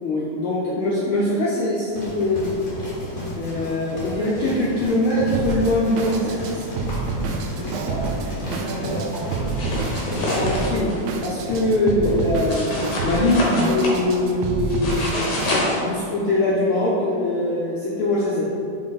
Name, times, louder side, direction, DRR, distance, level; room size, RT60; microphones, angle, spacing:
voice 1, 0.0-2.5 3.4-6.7 10.3-10.9 11.2-12.7 13.0-15.1 15.8-18.5, left 1 dB, 85° left, -6 dB, 1.1 m, -22 dB
sound 1, 1.9-13.6, equal, 40° left, 1.5 m, -32 dB
Drum kit, 5.3-15.5, right 4 dB, 80° right, 1.5 m, -29 dB
voice 2, 7.5-9.9, right 1 dB, 60° right, -5 dB, 2.5 m, -33 dB
sound 2, 9.5-11.0 12.5-14.0 14.7-15.8, left 1 dB, 55° left, 1.9 m, -26 dB
5.4 x 5.0 x 4.1 m, 2.7 s
omnidirectional pair, 3.4 m